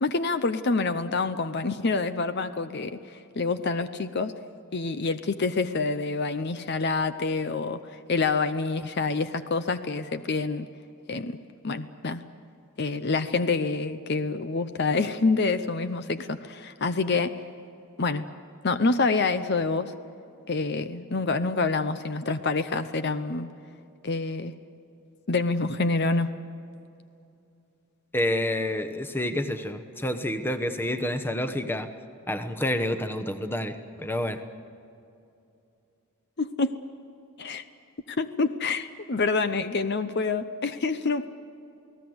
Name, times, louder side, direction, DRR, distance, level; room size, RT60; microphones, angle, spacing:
voice 1, 0.0-4.3 4.7-10.7 11.1-11.4 11.6-12.2 12.8-17.3 18.0-18.2 18.6-19.9 20.5-23.5 24.0-24.5 25.3-26.3 36.4-36.7 37.4-37.6 38.1-41.3, left 3 dB, 50° left, 11 dB, 0.7 m, -27 dB
voice 2, 28.1-31.9 32.3-34.4, left 1 dB, 10° left, 8 dB, 1.0 m, -28 dB
29.0 x 18.5 x 7.9 m, 2.6 s
head